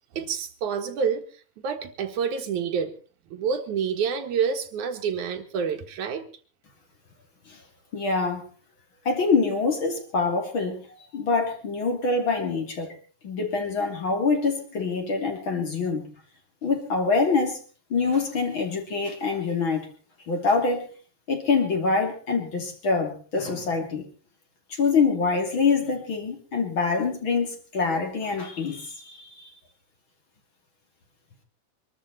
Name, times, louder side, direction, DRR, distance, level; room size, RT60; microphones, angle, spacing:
voice 1, 0.1-1.2 1.6-2.9 3.3-6.2, right 6 dB, 90° right, 5 dB, 3.0 m, -28 dB
voice 2, 7.9-8.4 9.1-10.8 11.1-12.9 13.2-16.1 16.6-17.6 17.9-19.9 20.3-20.9 21.3-24.0 24.7-29.5, left 4 dB, 45° left, 3 dB, 3.5 m, -25 dB
24.0 x 13.0 x 4.1 m, 0.38 s
omnidirectional pair, 3.3 m